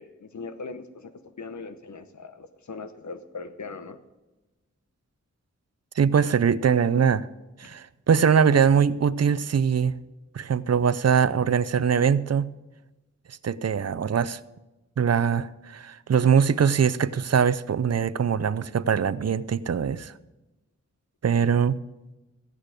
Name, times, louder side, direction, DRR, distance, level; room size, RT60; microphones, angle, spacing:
voice 1, 0.0-4.0 7.6-7.8, left 4 dB, 70° left, 10 dB, 1.0 m, -40 dB
voice 2, 6.0-7.3 7.6-10.0 10.3-12.5 13.3-14.4 15.0-20.1 21.2-21.8, right 7 dB, 60° right, 16 dB, 0.5 m, -22 dB
14.5 x 9.0 x 5.0 m, 1.1 s
wide cardioid pair, 95°, 30 cm